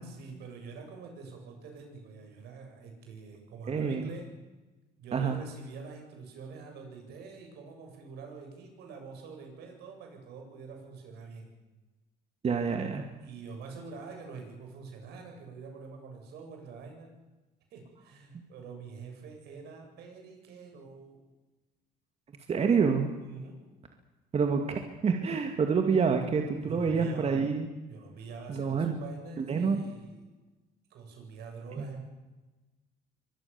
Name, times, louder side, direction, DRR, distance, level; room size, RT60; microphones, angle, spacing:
voice 1, 0.0-4.3 5.0-11.5 13.2-17.1 17.7-21.2 23.2-23.6 26.6-27.4 27.9-30.3 30.9-32.0, right 4 dB, 75° right, 3 dB, 7.8 m, -45 dB
voice 2, 3.7-4.1 5.1-5.4 12.4-13.0 22.5-23.1 24.3-27.7 28.5-29.0 29.4-29.8 31.8-31.9, right 5 dB, 40° right, 4 dB, 2.4 m, -27 dB
24.5 x 20.5 x 7.2 m, 1.2 s
cardioid pair, 110°, 17 cm